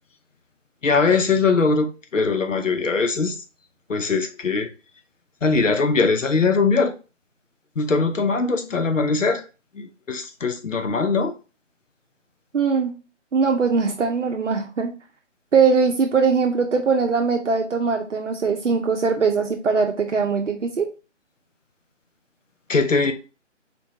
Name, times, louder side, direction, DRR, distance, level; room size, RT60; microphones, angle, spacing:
voice 1, 0.8-3.4 3.9-4.7 5.4-7.0 7.8-9.4 9.7-11.4 22.7-23.1, left 4 dB, 85° left, 7 dB, 0.8 m, -21 dB
voice 2, 12.5-12.9 13.3-15.0 15.5-20.9, right 5 dB, 70° right, 2 dB, 0.8 m, -21 dB
4.4 x 3.3 x 2.8 m, 0.32 s
figure-of-eight pair, 155°, 37 cm